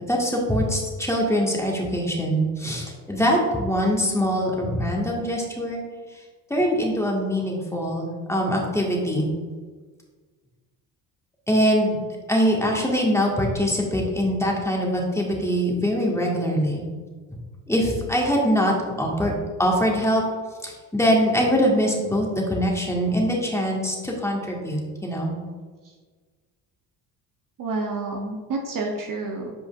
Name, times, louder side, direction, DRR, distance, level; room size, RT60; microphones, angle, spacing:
voice 1, 0.1-5.8 6.1-6.2 6.5-9.3 11.5-12.0 12.3-16.8 17.7-19.3 19.6-20.2 20.6-25.4, equal, 5° left, -2 dB, 1.8 m, -23 dB
voice 2, 27.6-29.5, right 3 dB, 45° right, 2 dB, 1.0 m, -29 dB
9.1 x 4.9 x 2.5 m, 1.5 s
hypercardioid pair, 50°, 45 cm